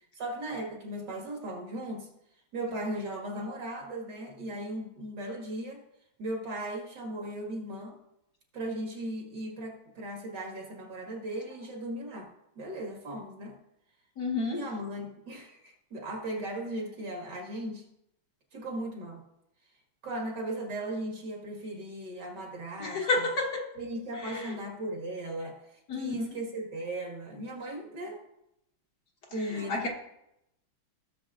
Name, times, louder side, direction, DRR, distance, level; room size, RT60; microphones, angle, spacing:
voice 1, 0.2-2.1 2.5-5.8 6.2-8.0 8.5-12.3 12.6-13.6 14.5-17.9 18.5-19.2 20.0-23.1 23.8-28.2 29.3-29.9, right 1 dB, 55° right, 0 dB, 2.2 m, -37 dB
voice 2, 14.2-14.7 22.8-23.7 24.1-24.6 25.9-26.4 29.5-29.9, left 3 dB, 55° left, -1 dB, 1.6 m, -31 dB
16.5 x 7.1 x 2.5 m, 0.83 s
omnidirectional pair, 2.3 m